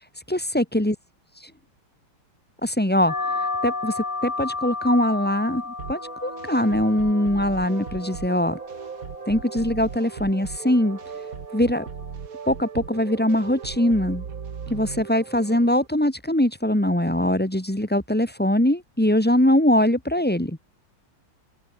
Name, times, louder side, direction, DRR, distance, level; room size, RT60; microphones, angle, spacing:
voice 1, 0.3-1.0 2.6-3.1 3.6-8.6 9.3-11.0 11.5-11.9 12.5-14.2 14.7-20.6, left 1 dB, 5° left, 2.2 m, -22 dB
sound 1, 3.1-12.1, left 3 dB, 55° left, 4.7 m, -34 dB
sound 2, 5.8-15.9, right 6 dB, 45° right, 1.9 m, -37 dB
open air
omnidirectional pair, 2.2 m